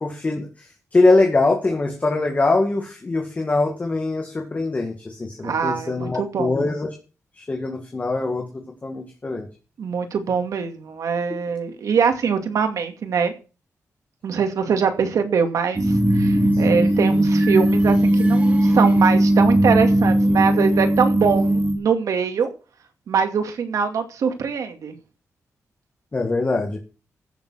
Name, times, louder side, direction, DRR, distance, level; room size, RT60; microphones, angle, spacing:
voice 1, 0.0-6.9 7.3-8.4 8.8-9.5 16.4-16.8 26.1-26.8, left 2 dB, 25° left, 2 dB, 2.2 m, -22 dB
voice 2, 5.4-6.6 9.8-13.3 14.2-22.5 23.1-24.9, right 6 dB, 80° right, 6 dB, 2.4 m, -23 dB
sound 1, 15.8-21.7, right 1 dB, 25° right, 3.0 m, -18 dB
15.0 x 7.1 x 6.3 m, 0.35 s
wide cardioid pair, 135°, 6 cm